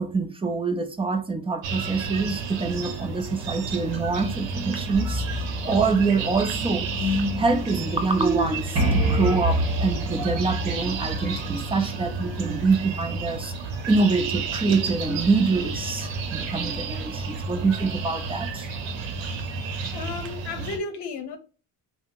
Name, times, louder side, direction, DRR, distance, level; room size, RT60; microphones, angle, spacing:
voice 1, 0.0-5.2 5.6-6.9 7.3-13.5 13.9-18.7, right 4 dB, 15° right, 0.4 m, -25 dB
sound 1, 1.6-20.8, right 4 dB, 70° right, 0.8 m, -32 dB
sound 2, 4.9-14.0, left 1 dB, 5° left, 0.9 m, -33 dB
sound 3, 8.8-12.4, right 1 dB, 35° right, 1.3 m, -26 dB
voice 2, 19.9-21.4, left 4 dB, 55° left, 0.8 m, -33 dB
3.7 x 2.1 x 2.4 m
cardioid pair, 105°, 47 cm